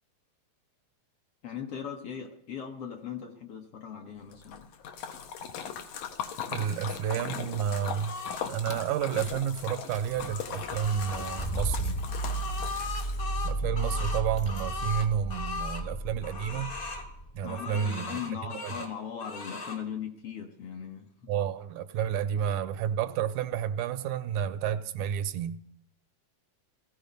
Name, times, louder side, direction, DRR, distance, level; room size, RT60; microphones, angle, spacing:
voice 1, 1.4-4.7 17.4-21.3 22.3-22.6, left 8 dB, 60° left, 1.8 m, -39 dB
Splash splatter, 4.3-13.4, left 7 dB, 80° left, 2.5 m, -39 dB
voice 2, 6.5-8.1 8.5-12.0 13.4-16.7 17.3-18.2 18.6-18.7 21.3-25.6, right 9 dB, 85° right, 2.2 m, -30 dB
sound 1, 7.7-8.5 9.9-11.5 12.0-15.8 16.2-17.1 17.5-18.9 19.2-19.8, left 4 dB, 40° left, 1.4 m, -39 dB
Rattle / Car / Engine starting, 8.6-8.7 9.2-9.5 9.8-17.5, right 2 dB, 15° left, 1.0 m, -35 dB
17.0 x 14.5 x 5.3 m
omnidirectional pair, 3.4 m